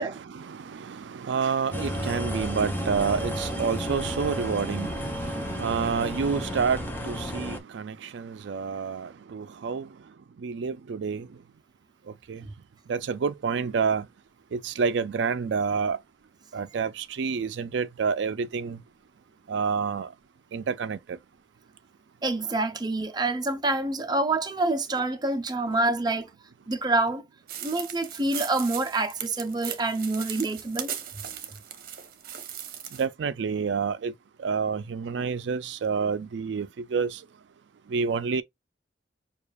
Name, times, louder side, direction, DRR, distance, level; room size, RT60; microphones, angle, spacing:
voice 1, 0.1-9.9 10.4-11.3 12.3-12.4 12.9-14.1 14.5-16.0 16.5-18.8 19.5-20.1 20.5-21.2 32.9-34.1 34.4-37.2 37.9-38.4, right 5 dB, 75° right, 0.4 m, -28 dB
sound 1, 1.7-7.6, equal, 10° left, 0.8 m, -32 dB
voice 2, 22.2-26.3 26.7-27.2 27.6-30.9 31.3-31.4, right 2 dB, 25° right, 0.6 m, -27 dB
sound 2, 27.5-33.0, right 9 dB, 55° right, 0.8 m, -38 dB
6.7 x 2.4 x 2.3 m
head